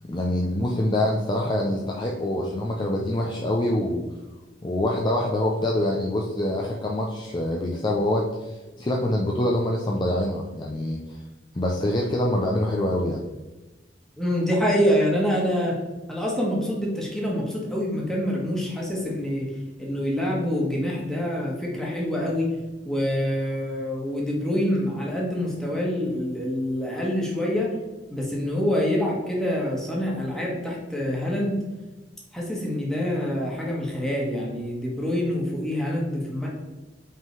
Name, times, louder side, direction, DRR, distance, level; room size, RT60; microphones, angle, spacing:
voice 1, 0.1-4.0 4.6-11.2 11.5-13.2, left 1 dB, 25° left, -1 dB, 0.5 m, -25 dB
voice 2, 14.2-15.8 16.1-19.5 19.8-22.5 22.8-27.7 28.1-31.6 32.3-36.5, equal, 5° left, -4 dB, 1.4 m, -26 dB
5.6 x 3.7 x 4.6 m, 1.1 s
head